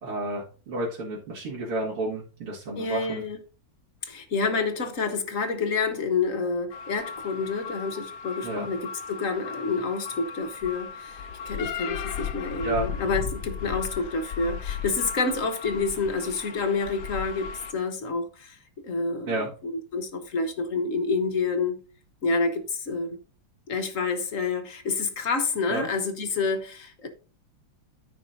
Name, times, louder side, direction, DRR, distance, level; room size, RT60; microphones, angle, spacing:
voice 1, 0.0-3.2 8.4-8.7 12.2-12.3 12.6-12.9 19.2-19.5 25.7-25.9, right 2 dB, 90° right, 3.0 m, -31 dB
voice 2, 2.8-3.4 4.0-18.6 18.8-21.8 22.2-23.1 23.7-27.1, left 4 dB, 45° left, 1.3 m, -28 dB
sound 1, 6.7-17.7, left 7 dB, 70° left, 1.0 m, -36 dB
14.0 x 5.2 x 2.7 m
omnidirectional pair, 2.3 m